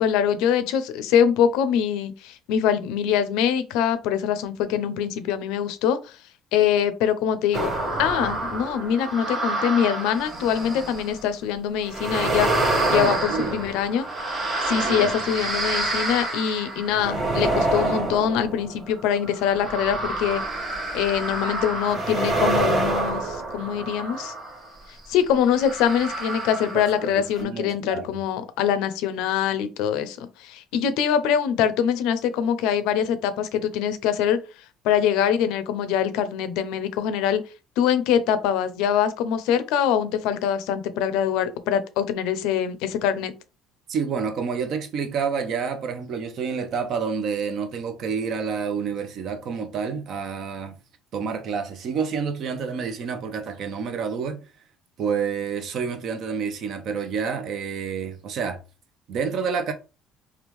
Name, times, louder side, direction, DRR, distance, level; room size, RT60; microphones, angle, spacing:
voice 1, 0.0-6.2 6.5-7.7 8.0-12.5 12.9-14.1 14.6-20.4 20.9-24.3 25.1-34.4 34.8-37.4 37.8-43.3, left 8 dB, 80° left, 0.5 m, -23 dB
sound 1, 7.5-11.2 11.9-24.7 25.5-27.1 27.4-27.5, right 2 dB, 30° right, 1.0 m, -27 dB
voice 2, 12.9-13.6 14.7-15.1 27.0-28.0 43.9-50.8 51.1-54.4 55.0-58.6 59.1-59.7, right 6 dB, 55° right, 0.6 m, -28 dB
3.5 x 2.3 x 3.0 m
cardioid pair, 130°, 0 cm